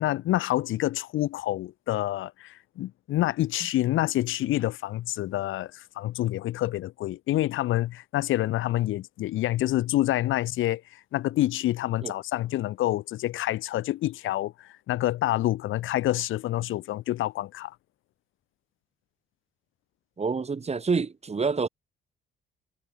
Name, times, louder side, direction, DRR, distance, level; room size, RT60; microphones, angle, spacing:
voice 1, 0.0-17.7, left 15 dB, 85° left, 2.5 m, -27 dB
voice 2, 20.2-21.7, right 4 dB, 30° right, 4.5 m, -27 dB
cardioid pair, 90°, 20 cm